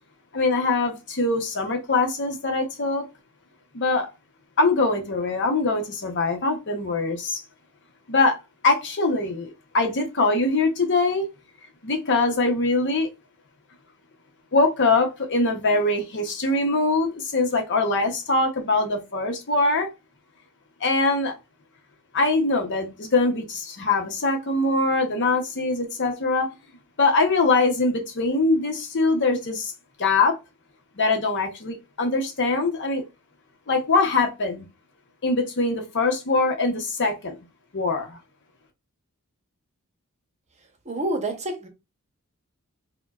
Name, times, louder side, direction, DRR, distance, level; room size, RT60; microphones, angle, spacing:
voice 1, 0.3-3.1 3.7-4.1 4.6-7.4 8.1-8.4 8.6-11.3 11.8-13.1 14.5-19.9 20.8-21.3 22.1-26.5 27.0-29.7 30.0-30.4 31.0-33.0 33.7-34.7 35.2-37.4 37.7-38.2, left 3 dB, 55° left, 0.8 m, -23 dB
voice 2, 40.9-41.7, right 1 dB, 30° right, 0.8 m, -28 dB
5.0 x 2.2 x 2.3 m
head